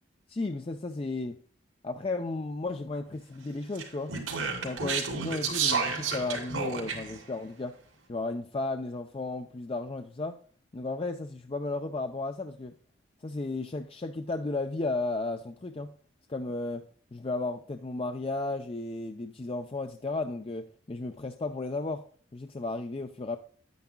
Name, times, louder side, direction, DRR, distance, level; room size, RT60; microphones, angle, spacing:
voice 1, 0.3-1.4 1.8-4.2 4.6-7.8 8.1-10.4 10.7-12.7 13.2-15.9 16.3-22.0 22.3-23.4, left 2 dB, 30° left, 6 dB, 0.4 m, -34 dB
Speech, 3.7-7.2, right 5 dB, 90° right, 2.7 m, -31 dB
10.0 x 9.3 x 2.2 m, 0.44 s
head